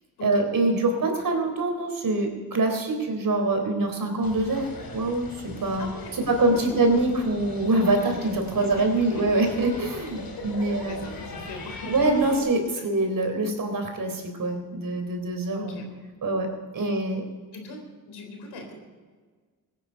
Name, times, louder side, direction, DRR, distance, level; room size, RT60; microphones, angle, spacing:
voice 1, 0.2-11.1 11.9-15.8 16.2-17.2, right 2 dB, 55° right, 4 dB, 3.8 m, -25 dB
sound 1, 4.2-12.4, left 3 dB, 60° left, 3.1 m, -40 dB
voice 2, 5.8-6.9 8.6-8.9 9.2-9.4 10.7-12.8 15.5-15.9 16.8-17.0 17.5-18.7, left 2 dB, 85° left, 3 dB, 3.9 m, -40 dB
17.0 x 9.8 x 6.9 m, 1.5 s
cardioid pair, 65°, 39 cm